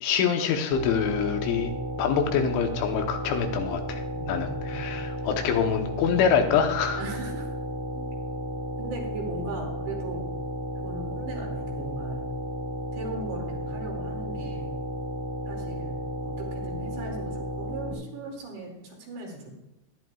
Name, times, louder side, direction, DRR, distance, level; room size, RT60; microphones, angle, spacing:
voice 1, 0.0-1.7 2.0-7.0, left 7 dB, 85° left, 5 dB, 3.4 m, -25 dB
sound 1, 0.7-17.9, equal, 10° right, 1.6 m, -33 dB
voice 2, 4.1-4.9 5.2-5.4 7.0-7.5 7.9-8.0 8.8-10.3 10.8-12.3 12.9-14.8 15.5-19.5, right 2 dB, 70° right, -1 dB, 4.6 m, -38 dB
21.5 x 11.0 x 2.4 m, 0.90 s
omnidirectional pair, 5.3 m